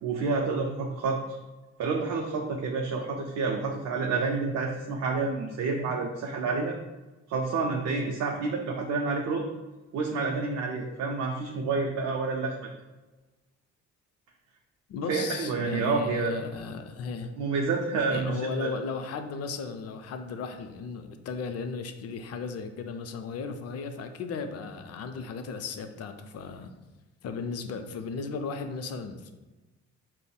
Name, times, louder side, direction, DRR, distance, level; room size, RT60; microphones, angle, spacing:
voice 1, 0.0-1.2 1.8-6.7 7.3-9.5 9.9-12.7 15.1-16.3 17.4-18.8, right 4 dB, 60° right, 1 dB, 0.4 m, -29 dB
voice 2, 14.9-17.3 18.1-26.7 27.2-29.3, left 5 dB, 55° left, 7 dB, 0.4 m, -35 dB
5.2 x 2.0 x 2.3 m, 1.1 s
cardioid pair, 90°, 30 cm